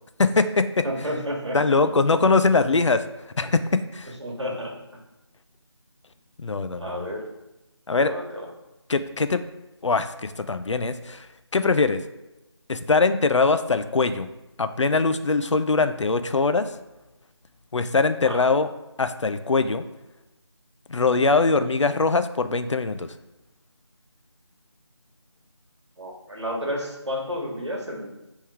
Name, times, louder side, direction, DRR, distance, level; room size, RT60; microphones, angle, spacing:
voice 1, 0.2-0.8 1.5-3.0 3.4-4.1 6.4-7.1 7.9-8.1 8.9-9.4 9.8-11.3 11.5-12.0 12.7-14.3 14.6-16.7 17.7-18.7 19.0-19.8 20.9-23.1, left 3 dB, 90° left, 11 dB, 0.4 m, -22 dB
voice 2, 0.8-1.9 4.2-5.0 6.8-7.2 8.0-8.5 18.2-18.4 26.0-28.1, equal, 75° right, 0 dB, 1.3 m, -31 dB
3.6 x 3.1 x 4.7 m, 0.99 s
figure-of-eight pair, 170°, 15 cm